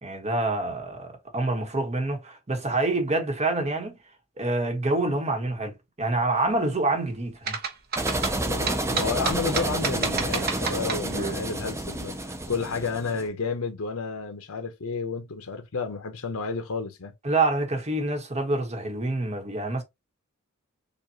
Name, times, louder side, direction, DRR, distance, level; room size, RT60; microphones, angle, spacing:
voice 1, 0.0-4.0 4.4-7.6 17.2-19.8, right 2 dB, 30° right, 1.3 m, -27 dB
sound 1, 7.5-11.3, right 5 dB, 45° right, 0.9 m, -30 dB
sound 2, 8.0-13.3, right 1 dB, 15° right, 0.6 m, -29 dB
voice 2, 8.3-17.1, left 4 dB, 70° left, 0.8 m, -31 dB
6.9 x 2.5 x 2.9 m
head